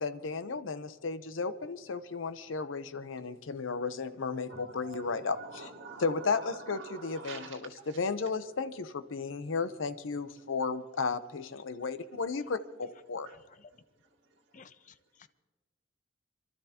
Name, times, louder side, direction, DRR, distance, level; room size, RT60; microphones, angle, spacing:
voice 1, 0.0-5.4 6.0-7.4 8.0-13.3, left 4 dB, 85° left, 0.7 m, -34 dB
voice 2, 4.5-8.0 13.2-14.7, right 3 dB, 70° right, 2.0 m, -48 dB
voice 3, 13.3-13.7 14.5-15.3, left 5 dB, 40° left, 0.5 m, -56 dB
28.5 x 12.5 x 2.9 m
head